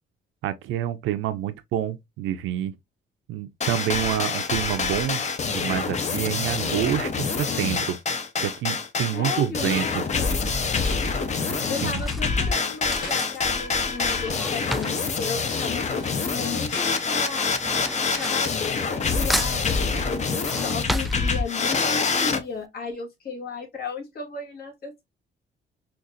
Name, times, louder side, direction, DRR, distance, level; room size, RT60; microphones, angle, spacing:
voice 1, 0.4-2.7 3.3-8.0 8.4-10.0 11.5-11.6 11.8-12.0, right 12 dB, 80° right, 0.4 m, -28 dB
sound 1, 3.6-22.4, left 4 dB, 35° left, 0.6 m, -26 dB
voice 2, 9.1-10.4 11.7-17.5 18.1-25.0, left 5 dB, 50° left, 1.4 m, -34 dB
Drawer open or close / Cutlery silverware, 9.4-9.7 10.5-16.4 16.7-19.0 19.3-21.8 22.2-22.3 22.6-22.7, equal, ahead, 0.3 m, -34 dB
sound 2, 11.8-19.9, left 4 dB, 70° left, 1.1 m, -43 dB
3.8 x 2.4 x 2.4 m
cardioid pair, 90°, 20 cm